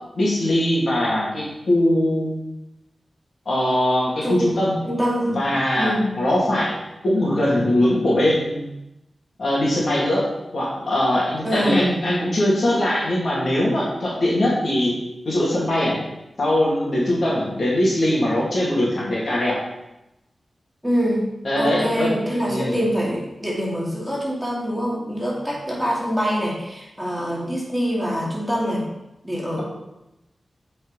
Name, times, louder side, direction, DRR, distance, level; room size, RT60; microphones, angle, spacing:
voice 1, 0.1-2.4 3.5-4.8 5.3-6.8 7.0-8.7 9.4-10.3 10.5-15.0 15.2-16.0 16.4-19.6 21.4-22.1 22.5-22.7, left 1 dB, 65° left, -5 dB, 2.7 m, -21 dB
voice 2, 4.8-5.4 5.7-6.1 11.4-11.8 20.8-21.3 21.6-28.8 29.2-29.6, equal, 5° right, -4 dB, 2.4 m, -24 dB
8.1 x 5.3 x 4.2 m, 0.91 s
cardioid pair, 60°, 0 cm